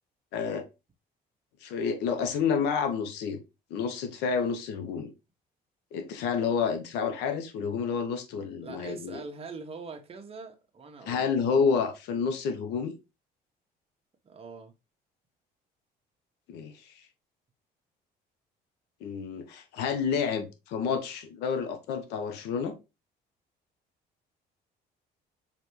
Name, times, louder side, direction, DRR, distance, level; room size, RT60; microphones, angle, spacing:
voice 1, 0.3-0.6 1.6-3.4 3.7-5.1 5.9-9.2 11.0-12.9 16.5-16.9 19.0-22.8, left 6 dB, 90° left, 1.0 m, -29 dB
voice 2, 8.6-11.4 14.2-14.7, right 4 dB, 35° right, 1.1 m, -43 dB
5.0 x 3.4 x 3.1 m
cardioid pair, 110°, 17 cm